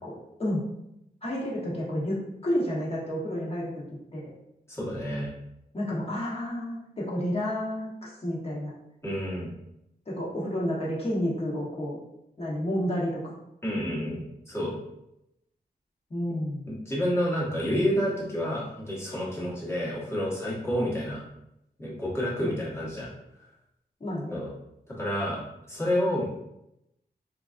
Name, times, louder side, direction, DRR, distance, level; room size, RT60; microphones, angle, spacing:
voice 1, 0.0-0.6 1.2-3.7 4.1-4.2 5.7-8.7 10.1-12.0 12.4-13.3 16.1-16.7 22.4-22.6 24.0-24.4, equal, 35° left, -6 dB, 1.2 m, -30 dB
voice 2, 4.7-5.3 9.0-9.5 13.6-14.7 16.7-21.2 21.8-23.1 24.3-24.5 24.9-25.4 25.7-26.2, equal, 15° left, -6 dB, 1.1 m, -29 dB
3.8 x 2.5 x 2.4 m, 0.83 s
wide cardioid pair, 120°, 16 cm